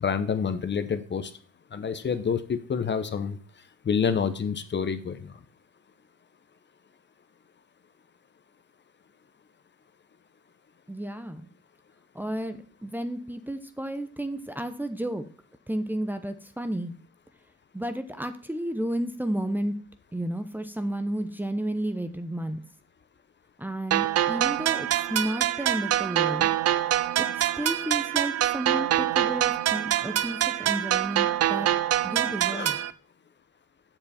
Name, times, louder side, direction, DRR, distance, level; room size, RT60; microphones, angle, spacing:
voice 1, 0.0-1.3 1.7-3.4 3.8-5.3 32.5-32.8, left 6 dB, 35° left, 11 dB, 0.8 m, -28 dB
voice 2, 10.9-11.5 12.1-15.2 15.7-16.9 17.7-19.8 20.1-22.6 23.6-26.5 27.2-31.7 32.0-32.7, right 1 dB, 5° right, 7 dB, 0.8 m, -32 dB
sound 1, 23.9-32.9, right 12 dB, 55° right, 0.6 m, -25 dB
7.9 x 6.7 x 4.2 m, 0.42 s
cardioid pair, 90°, 30 cm